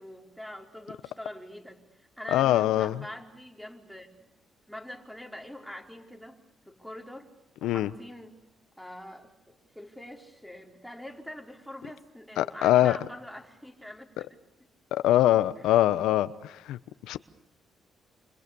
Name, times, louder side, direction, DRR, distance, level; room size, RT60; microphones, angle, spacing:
voice 1, 0.0-1.8 2.2-4.3 4.7-6.4 6.6-7.3 7.6-8.4 8.8-14.3 15.6-15.7, left 1 dB, ahead, 3 dB, 4.8 m, -44 dB
voice 2, 2.3-2.9 7.6-7.9 12.4-13.0 14.9-16.8 17.1-17.2, left 13 dB, 90° left, 13 dB, 1.0 m, -23 dB
28.0 x 28.0 x 7.0 m, 0.93 s
cardioid pair, 90°, 0 cm